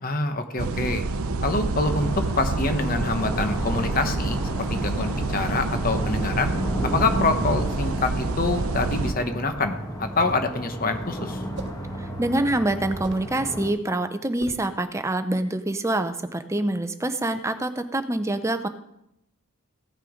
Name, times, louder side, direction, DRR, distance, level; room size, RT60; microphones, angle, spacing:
voice 1, 0.0-1.0 1.4-6.5 6.8-11.4, left 3 dB, 40° left, 7 dB, 1.0 m, -26 dB
sound 1, 0.6-9.1, right 3 dB, 80° right, 0.6 m, -28 dB
sound 2, 1.8-13.7, equal, 15° left, 1.5 m, -33 dB
sound 3, 10.0-10.5 11.6-11.9 12.9-13.3 14.4-14.7, right 2 dB, 55° right, 1.1 m, -39 dB
voice 2, 12.0-18.7, right 1 dB, 15° right, 9 dB, 0.6 m, -26 dB
16.0 x 6.5 x 5.0 m, 0.83 s
head